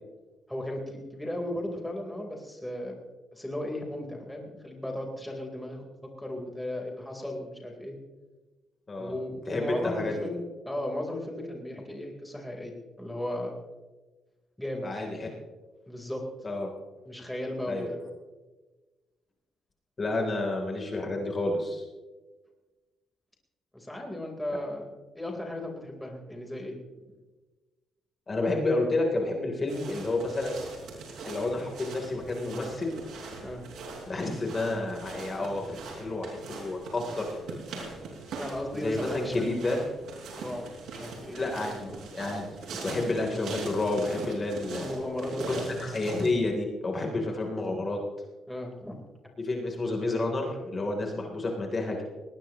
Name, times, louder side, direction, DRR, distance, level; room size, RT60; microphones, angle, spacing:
voice 1, 0.5-2.9 3.3-5.8 6.2-8.0 9.0-13.5 14.6-14.9 15.9-16.2 17.1-18.0 23.7-26.8 33.4-33.6 38.4-39.6 40.3-41.8 44.8-45.6 48.5-48.9, left 1 dB, 5° left, 0 dB, 3.9 m, -36 dB
voice 2, 9.5-10.1 14.8-15.3 16.4-16.7 17.7-18.0 20.0-21.8 28.3-30.6 31.2-32.9 34.1-37.4 37.7-37.9 38.7-39.8 41.3-42.4 42.8-44.9 45.5-48.0 49.4-52.0, left 2 dB, 35° left, 1 dB, 3.4 m, -30 dB
sound 1, 29.7-46.3, right 3 dB, 75° right, 5.5 m, -41 dB
19.5 x 19.0 x 3.0 m, 1.2 s
cardioid pair, 90°, 0 cm